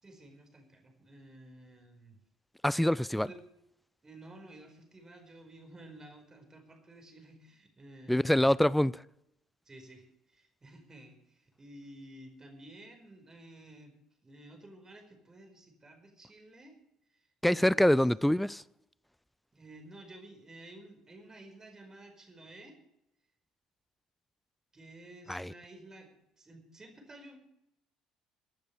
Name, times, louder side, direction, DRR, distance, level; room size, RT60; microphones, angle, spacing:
voice 1, 0.0-2.2 3.1-3.4 4.0-8.5 9.6-13.9 14.2-16.7 17.1-18.0 19.5-22.8 24.7-26.1 26.4-27.4, right 1 dB, 20° right, 4.7 m, -52 dB
voice 2, 2.6-3.3 8.1-9.0 17.4-18.6 25.3-25.5, left 1 dB, ahead, 0.4 m, -25 dB
23.0 x 12.0 x 3.3 m
figure-of-eight pair, 55°, 3 cm